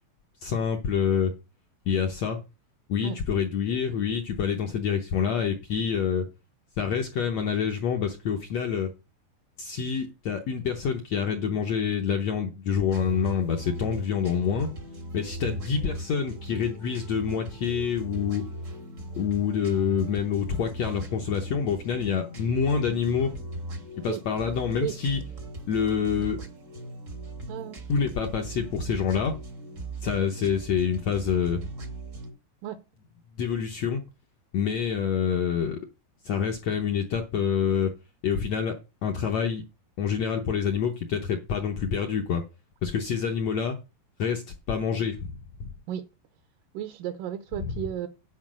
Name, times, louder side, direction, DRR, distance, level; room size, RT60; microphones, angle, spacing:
voice 1, 0.4-1.3 1.9-2.4 2.9-6.2 6.8-8.9 9.6-14.7 15.1-18.4 19.1-23.4 24.0-25.2 25.7-26.4 27.9-29.3 30.0-31.6 33.4-34.0 34.5-35.8 36.2-37.9 38.2-38.8 39.0-39.6 40.0-42.4 42.8-43.8 44.2-44.4 44.7-45.3 45.6-45.7 47.6-47.7, left 7 dB, 75° left, 1.5 m, -27 dB
sound 1, 12.9-32.3, right 1 dB, 60° right, 0.8 m, -38 dB
voice 2, 27.5-27.8 32.6-32.8 45.9-46.0 46.7-48.1, right 11 dB, 75° right, 2.2 m, -33 dB
9.8 x 4.8 x 6.1 m
omnidirectional pair, 4.1 m